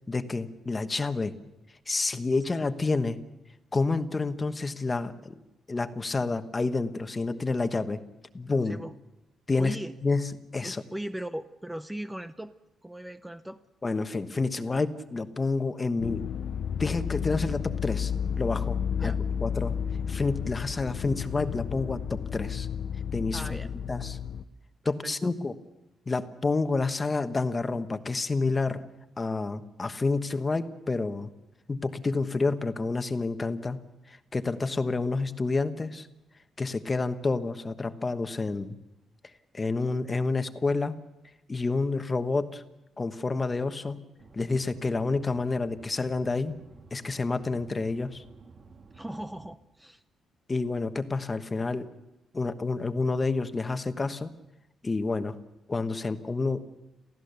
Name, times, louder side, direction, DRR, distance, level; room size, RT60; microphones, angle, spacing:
voice 1, 0.1-1.4 1.9-3.2 3.7-5.4 5.7-8.0 8.3-8.8 9.5-9.8 10.0-10.8 13.8-16.2 16.8-18.1 18.4-19.1 19.4-19.7 20.1-22.7 23.1-23.6 23.9-24.2 24.8-25.5 26.1-28.8 29.2-31.3 31.7-33.8 34.1-36.1 36.6-38.8 39.5-41.0 41.5-42.6 43.0-44.0 44.3-46.5 46.9-48.2 50.5-51.9 52.3-54.3 54.8-55.3 55.7-56.7, left 3 dB, 25° left, 9 dB, 1.2 m, -29 dB
voice 2, 9.6-9.9 10.6-12.5 12.8-13.6 19.0-19.2 23.3-23.7 25.0-25.3 48.9-50.0, right 1 dB, 5° right, 10 dB, 0.7 m, -38 dB
sound 1, 16.0-24.4, left 7 dB, 65° left, 0.8 m, -32 dB
sound 2, 44.2-49.6, right 4 dB, 45° right, 1.8 m, -52 dB
28.0 x 15.5 x 6.8 m, 0.96 s
cardioid pair, 115°, 0 cm